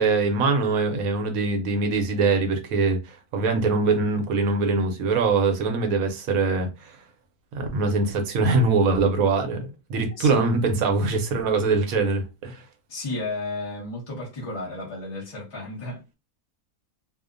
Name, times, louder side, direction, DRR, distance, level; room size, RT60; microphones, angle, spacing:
voice 1, 0.0-6.9 7.5-12.6, right 3 dB, 70° right, 1.0 m, -23 dB
voice 2, 10.2-10.5 12.9-16.0, left 2 dB, 30° left, 0.6 m, -33 dB
2.7 x 2.1 x 2.4 m
omnidirectional pair, 1.6 m